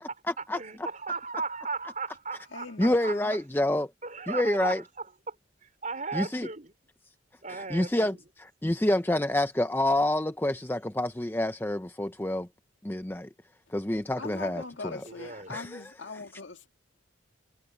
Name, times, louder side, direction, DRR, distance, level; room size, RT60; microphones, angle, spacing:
voice 1, 0.0-0.6 2.8-3.9 4.3-4.8 6.1-6.5 7.5-12.5 12.8-13.3 13.7-15.0 15.5-15.9, left 1 dB, 10° left, 0.5 m, -28 dB
voice 2, 0.5-3.2 4.0-5.3 5.6-6.7 7.4-8.1 15.0-15.5, right 4 dB, 40° right, 4.0 m, -36 dB
voice 3, 2.5-3.3 14.2-16.7, left 3 dB, 70° left, 1.9 m, -41 dB
head